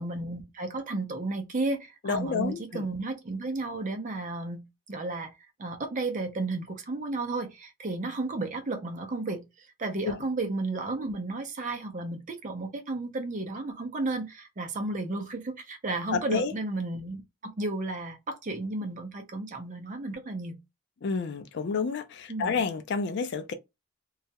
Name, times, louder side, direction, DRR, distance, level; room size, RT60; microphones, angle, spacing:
voice 1, 0.0-5.3 5.6-20.6 22.3-22.6, right 2 dB, 35° right, 0.5 m, -33 dB
voice 2, 2.0-2.9 10.0-10.1 16.1-16.5 21.0-23.5, left 5 dB, 50° left, 0.4 m, -29 dB
2.3 x 2.0 x 2.7 m
head